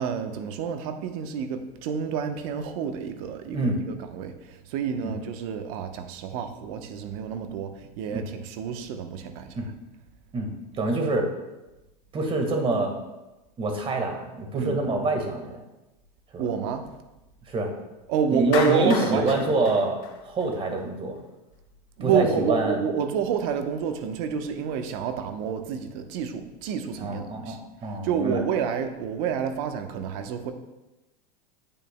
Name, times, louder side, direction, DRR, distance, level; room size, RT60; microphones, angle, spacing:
voice 1, 0.0-9.6 14.5-14.8 16.4-16.9 18.1-19.4 22.0-30.5, right 7 dB, 60° right, 7 dB, 0.9 m, -29 dB
voice 2, 10.8-11.3 12.1-13.0 13.6-15.6 16.3-16.4 17.5-17.7 18.3-21.2 22.0-22.8 27.0-28.4, right 2 dB, 25° right, 3 dB, 1.6 m, -26 dB
Clapping, 18.5-20.8, left 6 dB, 50° left, 1.2 m, -33 dB
9.1 x 8.8 x 2.2 m, 1.0 s
supercardioid pair, 125°, 21 cm